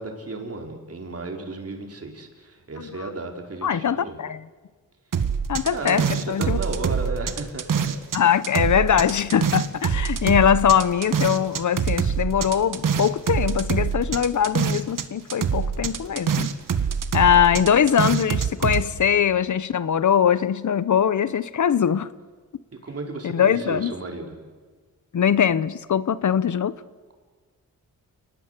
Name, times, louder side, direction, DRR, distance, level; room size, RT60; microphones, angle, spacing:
voice 1, 0.0-4.2 5.7-7.9 17.3-18.1 22.8-24.4, right 3 dB, 45° right, 4.6 m, -34 dB
voice 2, 3.6-4.4 5.5-6.6 8.1-16.5 17.1-22.1 23.2-23.9 25.1-26.8, left 8 dB, 60° left, 0.9 m, -21 dB
sound 1, 5.1-8.2 8.4-15.0 15.3-18.8, right 7 dB, 65° right, 1.7 m, -24 dB
29.5 x 19.5 x 8.2 m
wide cardioid pair, 110°, 34 cm